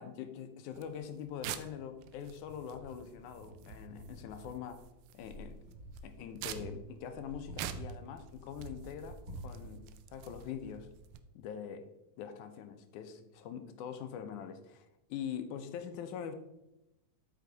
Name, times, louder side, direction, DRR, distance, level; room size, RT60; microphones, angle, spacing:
voice 1, 0.0-4.8 5.1-5.6 6.0-10.9 11.4-11.9 12.2-16.3, left 8 dB, 80° left, 8 dB, 2.2 m, -43 dB
sound 1, 0.7-11.2, right 10 dB, 85° right, 2.1 m, -48 dB
Wind, 2.2-11.1, right 2 dB, 25° right, 2.7 m, -51 dB
8.4 x 5.7 x 4.0 m, 0.91 s
omnidirectional pair, 3.6 m